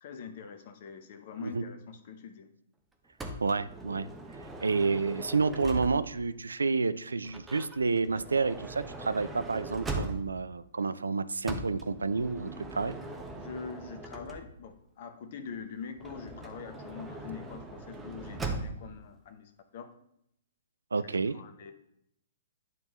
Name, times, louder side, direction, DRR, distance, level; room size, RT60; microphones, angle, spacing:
voice 1, 0.0-2.5 13.4-19.9 21.0-21.7, left 6 dB, 50° left, 6 dB, 0.7 m, -44 dB
Motor vehicle (road) / Sliding door, 3.2-6.3 7.2-10.5 11.4-14.7 16.0-18.9, right 2 dB, 10° right, 0.8 m, -40 dB
voice 2, 3.4-4.1 4.6-12.9 20.9-21.4, right 4 dB, 75° right, 15 dB, 0.3 m, -29 dB
9.0 x 3.5 x 3.0 m, 0.75 s
figure-of-eight pair, 115°, 0 cm